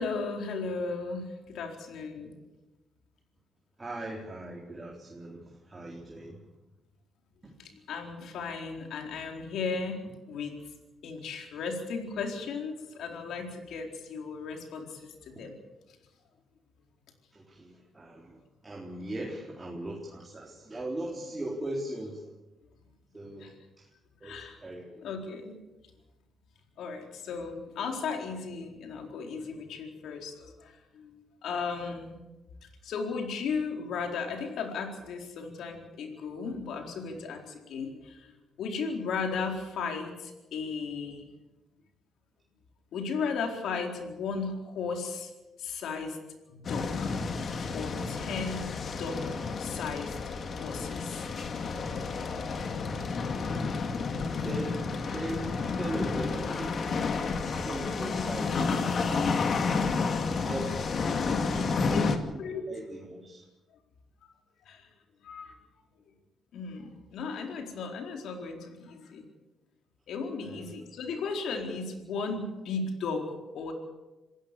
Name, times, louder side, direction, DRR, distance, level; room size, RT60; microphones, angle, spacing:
voice 1, 0.0-2.3 7.6-10.0 10.3-10.6 11.0-15.5 23.4-23.6 24.2-24.6 25.0-25.5 26.8-31.1 31.4-32.1 32.8-38.3 38.6-41.2 42.9-45.3 45.6-46.2 46.5-47.2 47.7-50.2 50.6-51.3 61.4-62.0 62.4-62.7 64.7-64.9 65.2-65.6 66.5-69.3 70.1-73.7, left 4 dB, 75° left, 3 dB, 4.3 m, -35 dB
voice 2, 3.8-6.4 7.4-7.5 15.4-15.5 17.3-22.2 23.1-23.8 24.2-25.0 54.4-56.7 57.6-58.6 59.0-59.3 60.4-60.9 61.2-62.4 62.7-63.5 70.4-70.7, right 1 dB, 20° right, -2 dB, 4.0 m, -39 dB
sound 1, 46.6-62.2, left 4 dB, 50° left, 2.4 m, -31 dB
26.5 x 16.0 x 7.0 m, 1.1 s
cardioid pair, 90°, 0 cm